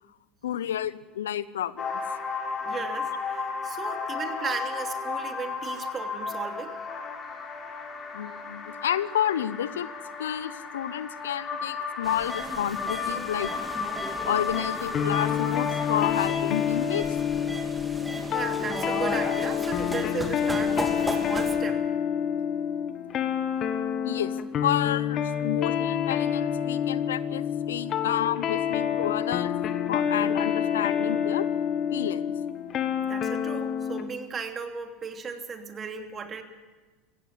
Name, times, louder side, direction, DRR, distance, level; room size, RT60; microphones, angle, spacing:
voice 1, 0.4-2.0 8.1-9.9 10.2-13.5 14.2-17.1 24.0-24.3 24.6-29.5 29.9-31.5 31.9-32.3, left 10 dB, 85° left, 17 dB, 0.7 m, -30 dB
sound 1, 1.8-16.3, left 5 dB, 30° left, 4.6 m, -33 dB
voice 2, 2.6-6.7 13.9-14.0 18.0-21.8 33.0-36.4, right 5 dB, 30° right, 5 dB, 2.9 m, -36 dB
sound 2, 12.0-21.6, right 1 dB, 5° right, 2.8 m, -36 dB
sound 3, 14.9-34.1, left 8 dB, 45° left, 1.6 m, -28 dB
16.5 x 16.5 x 9.8 m, 1.3 s
hypercardioid pair, 90°, 0 cm